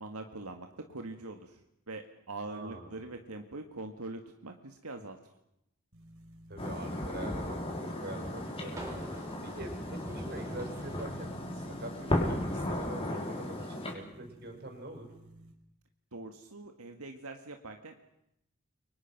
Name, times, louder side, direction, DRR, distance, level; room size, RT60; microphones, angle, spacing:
voice 1, 0.0-1.6 1.9-5.2 16.1-18.0, right 2 dB, 85° right, 4 dB, 2.0 m, -43 dB
voice 2, 2.5-3.0 6.5-9.0 9.4-15.1, right 1 dB, 50° right, 4 dB, 6.1 m, -44 dB
sound 1, 5.9-15.5, right 1 dB, 70° right, 5.0 m, -54 dB
sound 2, 6.6-13.9, left 1 dB, 25° left, 5.4 m, -35 dB
sound 3, 8.3-11.2 12.5-12.9, equal, 15° right, 5.3 m, -46 dB
29.5 x 24.5 x 6.1 m, 0.82 s
head